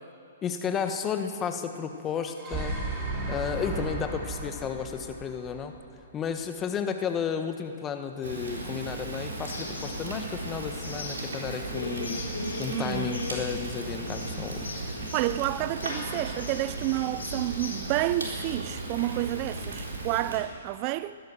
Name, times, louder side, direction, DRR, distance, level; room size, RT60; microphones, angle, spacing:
voice 1, 0.4-2.8 3.3-5.7 6.1-12.3 12.6-14.6, left 7 dB, 20° left, 1.2 m, -32 dB
sound 1, 2.1-6.3, right 2 dB, 20° right, 3.2 m, -34 dB
Fire, 8.2-20.4, right 2 dB, 85° right, 3.6 m, -36 dB
sound 2, 9.4-18.9, left 2 dB, 85° left, 3.9 m, -40 dB
voice 2, 12.7-13.2 14.7-21.2, right 16 dB, 35° right, 0.3 m, -30 dB
15.5 x 12.0 x 6.8 m
hypercardioid pair, 135°, 0 cm